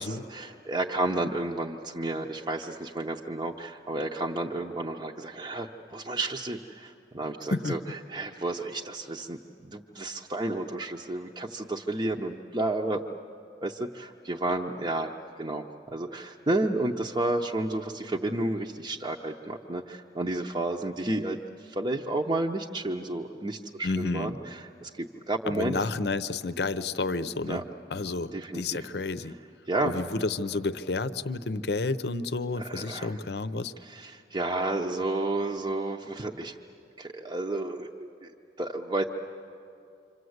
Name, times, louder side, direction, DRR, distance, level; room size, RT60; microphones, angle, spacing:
voice 1, 0.0-9.4 9.6-13.0 13.6-15.1 15.4-25.7 27.5-27.6 28.3-28.8 29.7-29.9 32.6-33.1 33.8-36.6 37.0-38.3 38.6-39.0, right 2 dB, 25° right, 0 dB, 0.7 m, -31 dB
voice 2, 23.8-24.3 25.5-27.6 27.9-29.3 29.8-33.7, left 3 dB, 70° left, 13 dB, 0.7 m, -30 dB
27.0 x 26.5 x 8.0 m, 2.6 s
head